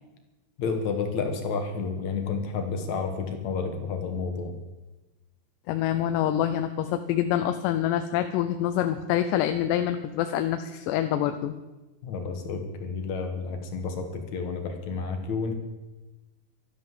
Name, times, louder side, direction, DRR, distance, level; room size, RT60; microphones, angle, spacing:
voice 1, 0.6-4.5 12.0-15.5, left 5 dB, 55° left, 5 dB, 2.4 m, -30 dB
voice 2, 5.7-11.5, left 11 dB, 85° left, 8 dB, 2.9 m, -26 dB
13.0 x 11.5 x 7.4 m, 1.1 s
omnidirectional pair, 4.9 m